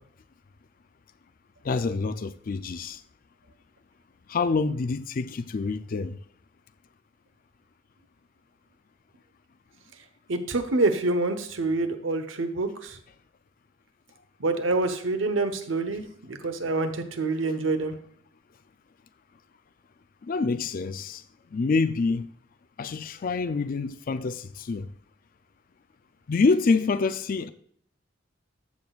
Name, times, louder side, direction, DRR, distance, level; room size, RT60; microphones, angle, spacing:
voice 1, 1.6-3.0 4.3-6.2 20.3-21.2 21.5-22.3 22.8-24.9 26.3-27.5, left 4 dB, 45° left, 0.4 m, -26 dB
voice 2, 10.3-13.0 14.4-17.9, right 3 dB, 85° right, 1.0 m, -27 dB
14.0 x 6.1 x 2.4 m
head